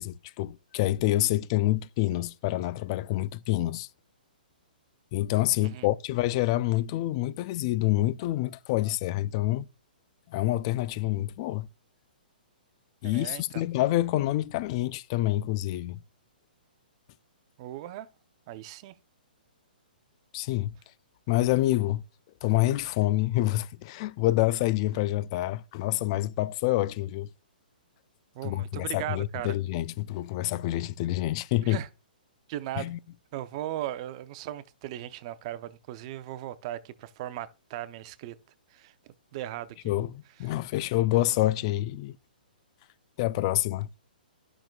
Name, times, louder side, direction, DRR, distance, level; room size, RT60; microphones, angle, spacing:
voice 1, 0.0-3.9 5.1-9.7 10.3-11.7 13.0-16.0 20.3-20.7 21.3-22.0 22.4-27.3 28.4-31.8 32.8-33.0 39.9-42.2 43.2-43.9, left 16 dB, 35° left, 0.3 m, -27 dB
voice 2, 13.0-13.6 17.6-18.1 18.5-19.0 28.3-29.6 31.6-31.9 32.5-32.9 33.3-38.4 38.7-38.9 39.3-39.9, right 13 dB, 35° right, 0.6 m, -37 dB
12.0 x 6.0 x 2.3 m
hypercardioid pair, 150°, 5 cm